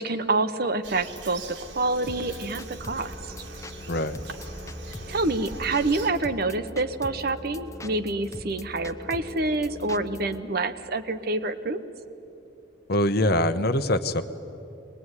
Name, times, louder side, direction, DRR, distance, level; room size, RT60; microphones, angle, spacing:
voice 1, 0.0-1.4 1.7-3.3 5.1-11.8, right 2 dB, 55° right, 10 dB, 1.0 m, -27 dB
Bird vocalization bird call bird song, 0.8-6.1, right 2 dB, 80° right, 2.2 m, -41 dB
sound 1, 2.1-10.4, left 1 dB, 15° left, 0.7 m, -41 dB
voice 2, 3.9-4.2 12.9-14.2, left 1 dB, 55° left, 10 dB, 1.0 m, -23 dB
23.0 x 20.0 x 9.8 m, 2.8 s
head